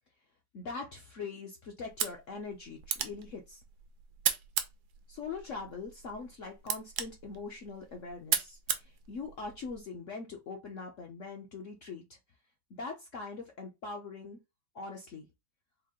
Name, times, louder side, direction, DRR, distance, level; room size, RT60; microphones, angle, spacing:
voice 1, 0.5-3.6 5.1-12.2 12.7-14.4 14.7-15.3, left 4 dB, 55° left, 0.8 m, -42 dB
sound 1, 1.8-9.8, right 8 dB, 65° right, 1.1 m, -37 dB
4.5 x 2.4 x 3.7 m
omnidirectional pair, 2.1 m